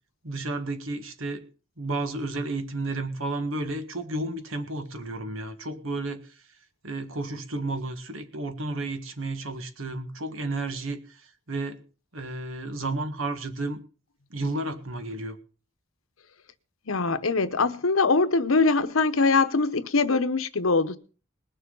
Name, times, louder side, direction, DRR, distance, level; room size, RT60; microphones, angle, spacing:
voice 1, 0.2-1.4 1.8-6.2 6.8-11.2 11.5-11.8 12.1-13.8 14.3-15.4, right 2 dB, 80° right, 1.7 m, -32 dB
voice 2, 16.9-21.0, left 3 dB, 85° left, 1.0 m, -22 dB
20.5 x 6.9 x 5.5 m
head